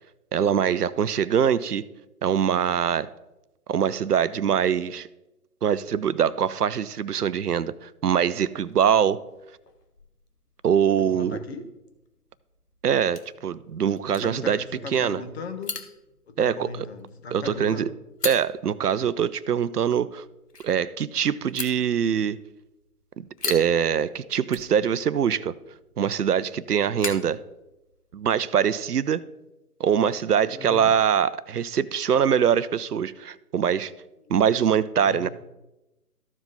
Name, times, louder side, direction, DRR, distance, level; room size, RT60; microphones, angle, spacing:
voice 1, 0.3-1.8 2.2-3.1 3.7-5.1 5.6-9.2 10.6-11.4 12.8-14.6 14.9-15.2 16.4-16.9 17.3-17.9 18.2-20.2 20.6-22.4 23.2-25.5 26.0-27.4 28.1-29.2 29.8-33.9 34.3-35.3, right 8 dB, 80° right, 18 dB, 0.6 m, -23 dB
sound 1, 8.5-28.2, left 4 dB, 90° left, 1.2 m, -42 dB
voice 2, 11.0-11.6 14.1-15.8 16.3-17.9 30.5-30.9 35.0-35.3, left 3 dB, 45° left, 7 dB, 1.3 m, -37 dB
14.0 x 4.9 x 3.9 m, 0.97 s
figure-of-eight pair, 140°, 46 cm